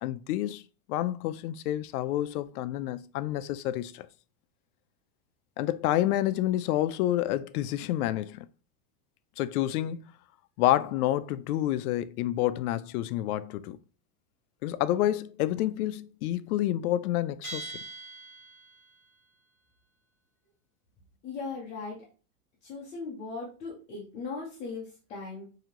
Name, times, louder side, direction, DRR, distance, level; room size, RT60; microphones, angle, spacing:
voice 1, 0.0-0.6 0.9-4.1 5.6-8.5 9.4-10.0 10.6-13.8 14.6-17.7, left 13 dB, 85° left, 0.5 m, -28 dB
Bell, 17.4-19.0, right 3 dB, 15° right, 2.1 m, -42 dB
voice 2, 21.2-22.1 22.6-25.5, left 4 dB, 15° left, 0.5 m, -38 dB
4.9 x 2.8 x 2.9 m
supercardioid pair, 180°, 43 cm